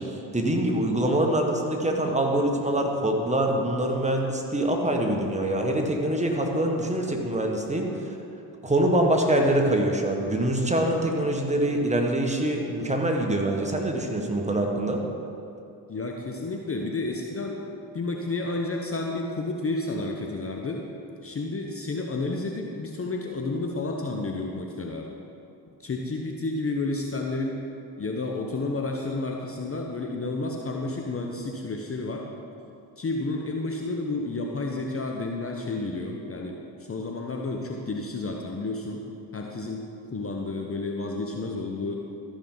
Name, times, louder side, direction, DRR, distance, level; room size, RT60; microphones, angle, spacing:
voice 1, 0.0-8.1 8.6-15.0, right 1 dB, 15° right, 1 dB, 1.6 m, -24 dB
voice 2, 15.9-17.6 17.9-20.8 21.2-25.1 25.8-27.6 28.0-32.3 33.0-36.6 36.9-39.0 39.3-39.9 40.1-42.0, left 2 dB, 25° left, 1 dB, 1.0 m, -31 dB
14.0 x 6.3 x 4.0 m, 2.7 s
hypercardioid pair, 50°, 50 cm